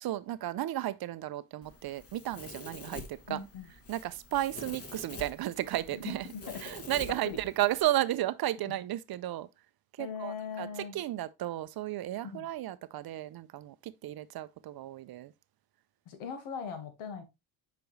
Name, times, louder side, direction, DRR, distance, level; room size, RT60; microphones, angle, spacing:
voice 1, 0.0-3.4 3.9-6.2 6.6-9.5 10.0-10.7 10.9-15.3, right 14 dB, 50° right, 0.5 m, -33 dB
Domestic sounds home sounds, 1.6-7.8, left 2 dB, 30° left, 1.4 m, -47 dB
voice 2, 3.3-3.7 5.9-6.6 7.1-7.4 8.7-8.8 10.0-11.0 12.2-12.5 16.1-17.2, left 6 dB, 80° left, 1.8 m, -40 dB
7.0 x 5.1 x 3.1 m
cardioid pair, 115°, 49 cm